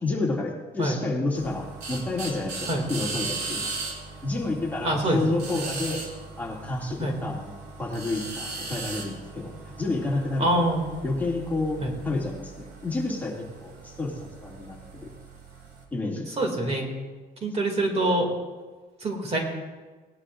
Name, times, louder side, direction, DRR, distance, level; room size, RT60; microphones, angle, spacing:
voice 1, 0.0-3.7 4.2-6.0 6.4-7.5 7.8-10.7 11.0-11.8 12.0-14.8 15.0-15.1 15.9-16.7, left 2 dB, 10° left, -3 dB, 2.4 m, -30 dB
sound 1, 1.3-15.8, right 3 dB, 70° right, 2.6 m, -38 dB
voice 2, 4.8-5.2 5.5-5.7 7.0-7.2 10.4-10.8 11.8-11.9 16.4-16.8 17.4-18.3 19.0-19.4, right 1 dB, 40° right, 2 dB, 2.5 m, -25 dB
19.0 x 11.5 x 2.6 m, 1.4 s
cardioid pair, 110°, 17 cm